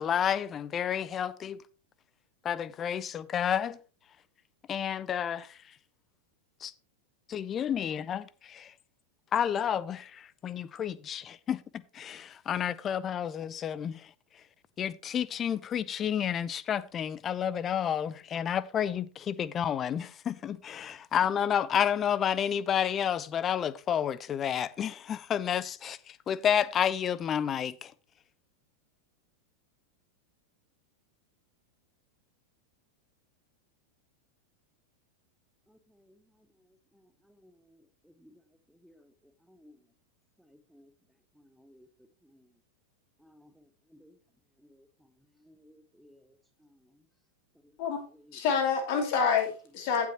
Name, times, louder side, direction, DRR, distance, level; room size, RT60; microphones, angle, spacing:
voice 1, 0.0-1.6 2.4-3.8 4.7-5.6 6.6-6.7 7.3-8.7 9.3-14.1 14.8-27.9, left 9 dB, 25° left, 0.5 m, -30 dB
voice 2, 35.7-36.2 36.6-38.4 38.7-39.1 39.4-39.8 40.4-40.9 41.3-41.9 42.2-42.5 43.2-44.2 44.6-45.1 45.4-47.0 47.6-47.8, left 1 dB, ahead, 1.2 m, -60 dB
voice 3, 48.3-50.1, left 6 dB, 45° left, 2.7 m, -27 dB
16.0 x 6.0 x 2.9 m
figure-of-eight pair, 90°, 0 cm